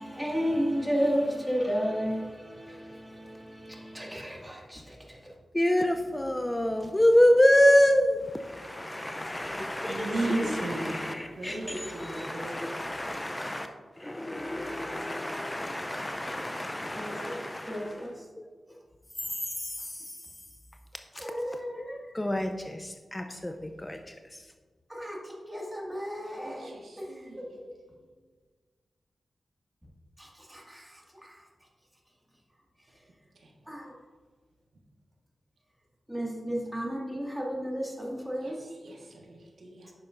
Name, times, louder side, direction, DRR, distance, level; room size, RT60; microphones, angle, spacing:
voice 1, 0.0-5.3 17.0-17.4 17.7-18.2 21.2-22.0 24.9-27.7 30.2-31.4 33.7-33.9 36.1-38.7, equal, 5° right, 1.9 m, -33 dB
voice 2, 5.5-13.7 14.0-17.8 19.6-19.7 21.2-21.3 21.8-24.0, left 1 dB, 15° left, 0.5 m, -27 dB
voice 3, 9.9-12.6 26.4-27.5 38.4-38.5 38.8-39.9, right 2 dB, 75° right, 1.3 m, -36 dB
9.4 x 6.7 x 2.5 m
cardioid pair, 65°, 0 cm